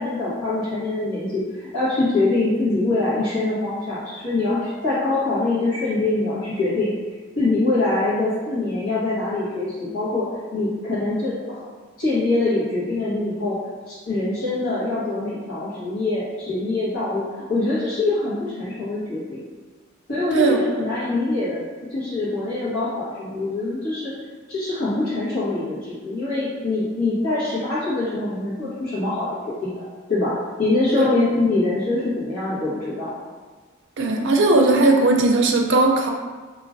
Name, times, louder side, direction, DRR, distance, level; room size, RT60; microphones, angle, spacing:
voice 1, 0.0-6.9 7.3-10.2 10.5-11.6 12.0-13.6 13.9-19.4 20.1-24.1 24.5-29.8 30.1-30.3 30.6-33.1, left 2 dB, 90° left, -14 dB, 1.4 m, -24 dB
voice 2, 20.3-20.8 30.9-31.1 34.0-36.1, right 2 dB, 60° right, 2 dB, 0.5 m, -18 dB
4.9 x 2.9 x 2.5 m, 1.4 s
head